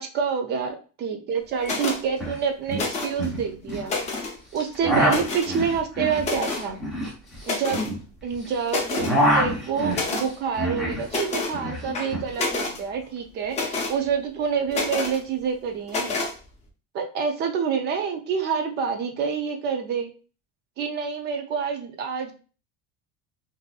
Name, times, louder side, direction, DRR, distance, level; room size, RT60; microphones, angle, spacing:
voice 1, 0.0-4.0 4.5-6.8 7.5-7.9 8.2-16.2 16.9-20.1 20.8-22.3, right 6 dB, 35° right, 6 dB, 0.4 m, -27 dB
sound 1, 1.6-2.0 2.7-3.3 3.7-4.4 5.1-5.6 6.2-6.7 7.4-7.9 8.3-8.4 8.7-9.1 9.9-10.3 11.1-11.6 11.9-12.8 13.5-14.0 14.7-15.2 15.9-16.3, left 3 dB, 20° left, 0.6 m, -28 dB
sound 2, 1.6-1.7 2.0-2.4 2.7-3.9 4.5-8.5 8.8-11.1 11.3-12.3, equal, ahead, 0.8 m, -26 dB
3.7 x 2.6 x 2.3 m, 0.36 s
cardioid pair, 170°, 32 cm